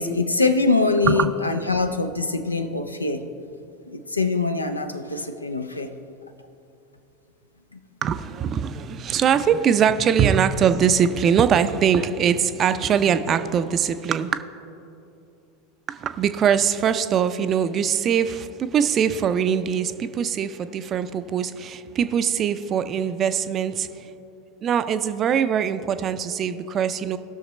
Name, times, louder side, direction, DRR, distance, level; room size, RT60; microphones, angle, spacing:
voice 1, 0.0-3.3 3.9-5.9 7.7-7.8, left 3 dB, 85° left, 8 dB, 0.5 m, -23 dB
voice 2, 8.0-14.4 15.9-24.1 24.6-27.2, right 8 dB, 35° right, 11 dB, 0.5 m, -22 dB
18.0 x 6.4 x 3.2 m, 2.7 s
figure-of-eight pair, 80°, 0 cm